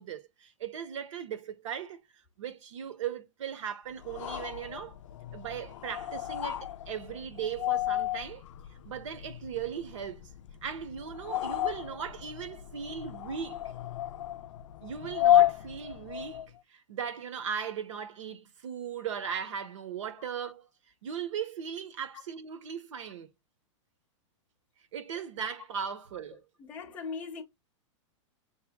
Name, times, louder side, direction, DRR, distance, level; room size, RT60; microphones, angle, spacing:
voice 1, 0.0-5.0 5.3-8.5 8.8-10.3 10.6-13.6 14.8-20.7 21.0-23.3 24.9-26.5, right 7 dB, 70° right, 1.0 m, -38 dB
sound 1, 4.0-16.6, left 12 dB, 70° left, 0.4 m, -32 dB
voice 2, 26.6-27.4, left 5 dB, 10° left, 0.7 m, -39 dB
7.1 x 3.2 x 2.3 m
supercardioid pair, 165°, 16 cm